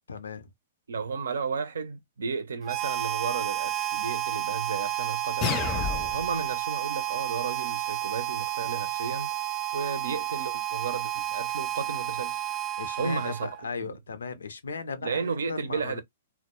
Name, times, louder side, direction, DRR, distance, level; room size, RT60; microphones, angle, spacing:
voice 1, 0.1-0.5 12.8-16.0, left 5 dB, 85° left, 0.5 m, -37 dB
voice 2, 0.9-12.5 13.0-13.5 13.8-14.0 15.0-16.0, right 5 dB, 80° right, 0.5 m, -33 dB
Harmonica, 2.6-13.7, right 13 dB, 25° right, 0.3 m, -31 dB
sound 1, 5.4-6.4, left 7 dB, 30° left, 0.5 m, -30 dB
2.2 x 2.0 x 2.9 m
hypercardioid pair, 130°, 0 cm